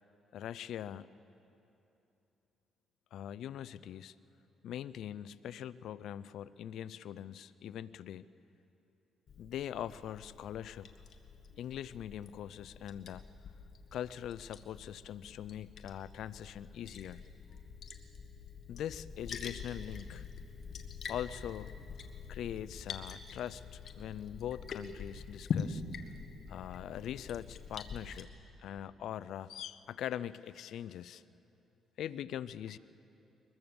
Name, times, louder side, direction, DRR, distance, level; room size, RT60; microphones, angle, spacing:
voice 1, 0.3-1.1 3.1-4.1 4.6-8.3 9.4-10.9 11.6-13.2 13.9-17.2 18.7-20.3 21.1-21.8 22.3-25.8 26.5-28.3 28.6-31.2 32.0-32.8, left 10 dB, 75° left, 16 dB, 0.5 m, -42 dB
Liquid, 9.3-28.2, left 6 dB, 55° left, 1.6 m, -45 dB
22.5 x 22.0 x 7.1 m, 2.9 s
cardioid pair, 90°, 0 cm